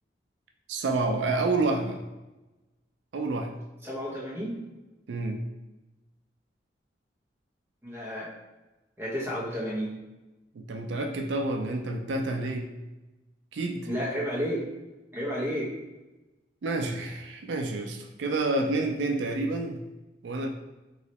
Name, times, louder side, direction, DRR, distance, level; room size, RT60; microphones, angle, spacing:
voice 1, 0.7-2.0 3.1-3.5 5.1-5.4 10.5-12.7 13.5-13.9 16.6-19.8 20.2-20.5, right 2 dB, 85° right, 3 dB, 0.4 m, -29 dB
voice 2, 3.8-4.6 7.8-8.3 9.0-9.9 13.8-14.7 15.1-15.7, equal, 10° right, -6 dB, 0.9 m, -31 dB
3.1 x 2.9 x 2.9 m, 1.1 s
head